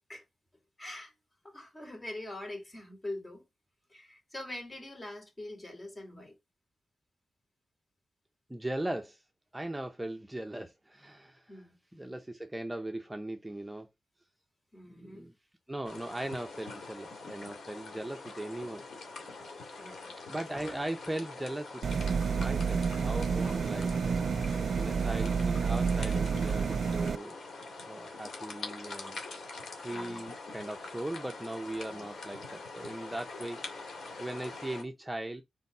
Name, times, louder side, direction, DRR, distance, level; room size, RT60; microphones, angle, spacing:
voice 1, 0.8-1.1 1.4-3.4 3.9-6.3 11.5-11.7 14.7-15.3 19.8-20.1 29.9-30.2 31.9-32.1, left 1 dB, 25° left, 3.3 m, -43 dB
voice 2, 8.5-9.2 9.5-11.7 11.9-13.9 14.9-15.3 15.7-18.8 20.3-21.8 22.2-24.2 24.8-27.4 27.9-29.2 29.7-35.4, right 1 dB, 10° right, 0.7 m, -39 dB
sound 1, 15.8-34.8, left 3 dB, 75° left, 2.3 m, -44 dB
sound 2, 21.8-27.2, right 5 dB, 75° right, 0.3 m, -29 dB
4.6 x 4.0 x 5.5 m
cardioid pair, 75°, 0 cm